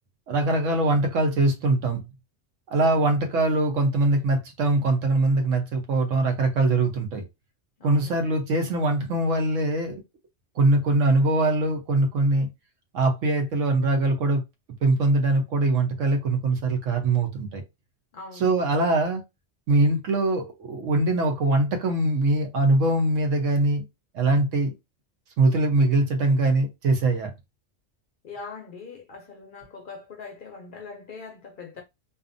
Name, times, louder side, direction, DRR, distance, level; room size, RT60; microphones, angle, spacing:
voice 1, 0.3-2.0 2.7-7.2 7.8-10.0 10.6-12.5 12.9-14.4 14.8-17.6 18.4-19.2 19.7-23.8 24.1-24.7 25.4-27.3, right 2 dB, 85° right, 1.1 m, -22 dB
voice 2, 7.8-8.4 18.1-18.5 28.2-31.8, left 4 dB, 55° left, 0.6 m, -42 dB
2.6 x 2.4 x 2.5 m
omnidirectional pair, 1.3 m